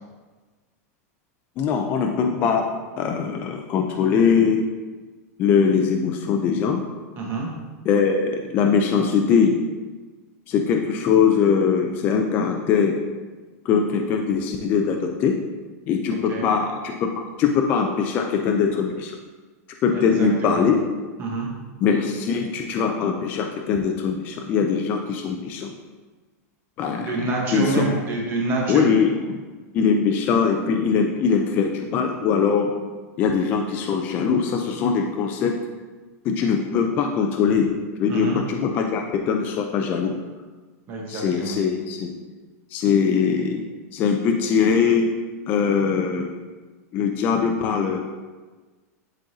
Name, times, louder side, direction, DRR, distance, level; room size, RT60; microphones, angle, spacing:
voice 1, 1.6-2.7 3.0-4.6 5.4-6.8 7.9-9.6 10.5-13.0 13.7-15.4 15.9-17.1 17.4-19.1 19.8-20.8 21.8-25.7 26.8-28.0 28.7-29.4 29.7-32.7 33.2-35.6 36.3-37.7 38.0-40.2 41.1-42.1 42.7-43.6 43.9-45.1 45.5-46.3 46.9-48.0, left 6 dB, 20° left, 3 dB, 0.3 m, -21 dB
voice 2, 7.2-7.5 16.3-16.5 19.9-20.6 21.2-21.5 27.0-28.8 38.1-38.4 40.9-41.6, right 2 dB, 25° right, -2 dB, 1.0 m, -27 dB
10.5 x 3.8 x 2.7 m, 1.3 s
supercardioid pair, 175°, 9 cm